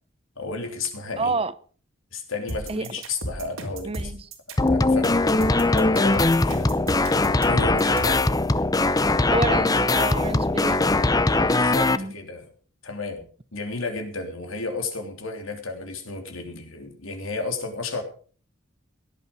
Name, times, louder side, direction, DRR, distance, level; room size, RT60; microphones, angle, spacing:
voice 1, 0.4-1.3 2.1-4.1 4.7-5.4 5.6-6.7 7.4-8.4 11.1-12.5 12.8-13.2 13.5-18.0, left 3 dB, 75° left, 3.3 m, -32 dB
voice 2, 1.2-1.5 2.7-2.9 3.9-4.3 9.3-11.5 11.9-12.1, right 3 dB, 25° right, 0.6 m, -29 dB
sound 1, 2.5-8.3, right 1 dB, 75° right, 3.7 m, -33 dB
sound 2, 4.6-12.0, left 2 dB, 20° left, 0.6 m, -21 dB
17.0 x 11.0 x 5.4 m
head